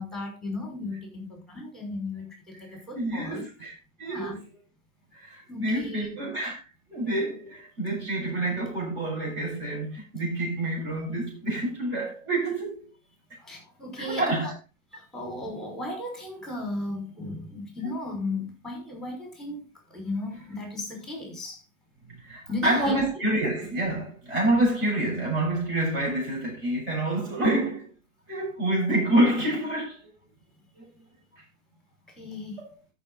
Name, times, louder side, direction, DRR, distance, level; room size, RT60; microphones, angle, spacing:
voice 1, 0.0-3.4 4.0-4.4 5.5-6.1 13.4-14.5 14.9-21.6 22.5-23.0 32.2-32.6, left 2 dB, ahead, 5.6 m, -35 dB
voice 2, 2.7-3.7 4.0-4.4 5.1-6.6 6.9-12.9 14.0-14.6 22.2-27.9 28.3-30.1 30.8-30.9 32.6-32.7, right 1 dB, 25° right, 7.2 m, -27 dB
14.0 x 6.7 x 4.1 m
figure-of-eight pair, 120°, 41 cm